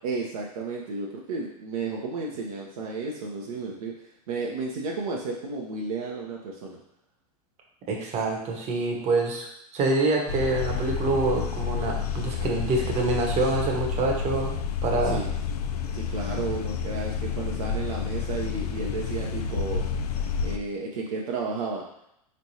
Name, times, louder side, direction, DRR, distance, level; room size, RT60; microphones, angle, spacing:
voice 1, 0.0-3.9 4.3-6.8 15.0-15.3 15.9-19.8 20.4-21.8, right 3 dB, 65° right, -2 dB, 0.7 m, -32 dB
voice 2, 7.9-9.5 9.7-14.5 14.8-15.2, right 3 dB, 35° right, 1 dB, 1.0 m, -26 dB
sound 1, 10.3-20.6, left 6 dB, 80° left, 0.4 m, -30 dB
4.3 x 3.2 x 2.7 m, 0.78 s
hypercardioid pair, 90°, 20 cm